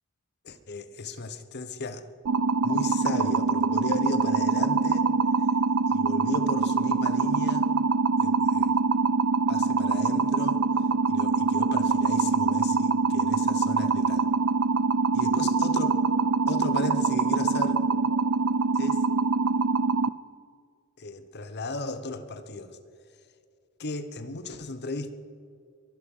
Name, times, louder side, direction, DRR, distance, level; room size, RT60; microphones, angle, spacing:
voice 1, 0.4-2.1 2.6-5.1 5.9-7.7 8.2-8.8 9.5-10.6 11.1-14.3 15.1-16.0 16.5-17.8 18.7-19.0 21.0-22.8 23.8-25.1, left 2 dB, 50° left, 1.0 m, -35 dB
sound 1, 2.3-20.1, right 4 dB, 75° right, 0.5 m, -24 dB
23.0 x 11.5 x 5.5 m
head